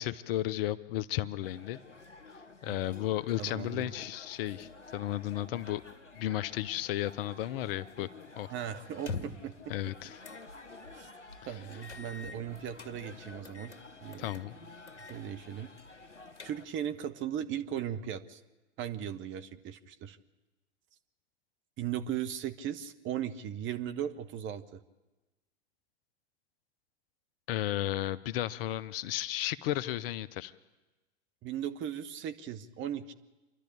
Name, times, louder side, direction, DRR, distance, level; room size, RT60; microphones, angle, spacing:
voice 1, 0.0-1.8 2.6-5.8 6.2-8.1 8.4-8.5 9.7-10.1 14.2-14.6 27.5-30.5, left 13 dB, 55° left, 17 dB, 0.8 m, -33 dB
sound 1, 1.4-16.7, left 3 dB, 90° left, 1.5 m, -51 dB
voice 2, 3.4-3.9 8.5-9.7 10.9-11.1 11.4-13.7 14.0-14.4 15.0-15.7 16.4-18.4 18.8-20.2 21.8-24.8 31.4-33.1, right 10 dB, 35° right, 9 dB, 1.2 m, -37 dB
sound 2, 8.9-9.5 10.2-10.5 10.9-11.0 11.8-12.9 13.4-13.8 14.1-14.5 14.9-15.2 15.5-15.6 16.1-16.9, left 4 dB, 70° left, 2.1 m, -43 dB
27.5 x 12.0 x 8.5 m, 1.1 s
figure-of-eight pair, 90°, 35 cm